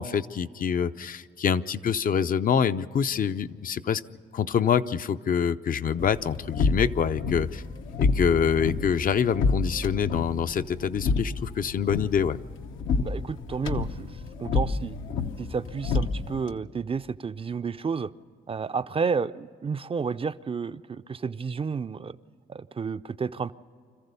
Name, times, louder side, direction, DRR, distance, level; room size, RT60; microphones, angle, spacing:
voice 1, 0.0-4.0 4.3-7.6 8.0-12.4, left 7 dB, 45° left, 12 dB, 0.6 m, -26 dB
sound 1, 6.0-16.6, left 4 dB, 80° left, 1.0 m, -29 dB
voice 2, 13.0-14.1 14.4-15.0 15.4-18.1 18.5-22.2 22.5-23.5, right 5 dB, 30° right, 12 dB, 0.5 m, -31 dB
26.0 x 14.5 x 6.9 m, 2.2 s
cardioid pair, 90°, 20 cm